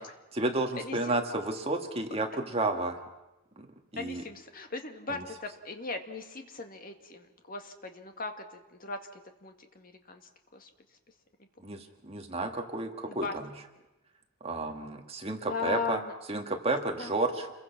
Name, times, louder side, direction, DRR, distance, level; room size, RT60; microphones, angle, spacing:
voice 1, 0.3-3.0 3.6-3.7 3.9-4.2 5.1-5.2 11.6-13.5 14.4-16.0 16.3-17.5, right 2 dB, 25° right, 3 dB, 1.9 m, -31 dB
voice 2, 0.8-1.2 4.0-9.0 9.4-10.2 10.5-10.7 11.7-11.9 13.1-13.3 15.5-16.1 17.0-17.1, left 4 dB, 40° left, 5 dB, 1.9 m, -38 dB
29.0 x 22.0 x 6.0 m, 1.0 s
head